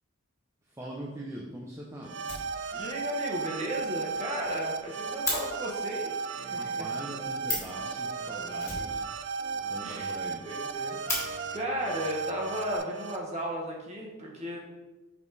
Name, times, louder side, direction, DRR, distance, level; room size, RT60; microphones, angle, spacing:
voice 1, 0.7-2.2 4.5-4.6 6.5-9.0 9.7-10.4, right 1 dB, 15° right, -4 dB, 0.6 m, -42 dB
Fire, 1.8-1.9 2.2-3.0 3.3-3.4 3.7-3.8 4.1-4.2 4.4-5.4 7.1-7.2 7.4-7.8 8.6-9.5 9.8-9.9 10.2-10.3 10.7-11.2 12.2-12.3 13.0-13.6, left 2 dB, 15° left, 1.8 m, -35 dB
sound 1, 2.0-13.2, right 5 dB, 55° right, 0.4 m, -35 dB
voice 2, 2.7-6.9 9.8-10.1 10.4-14.6, equal, 30° right, -2 dB, 1.4 m, -35 dB
Piano, 6.3-7.3 7.8-9.0 9.4-12.8, equal, 75° right, 1.9 m, -51 dB
5.3 x 4.2 x 4.7 m, 1.1 s
head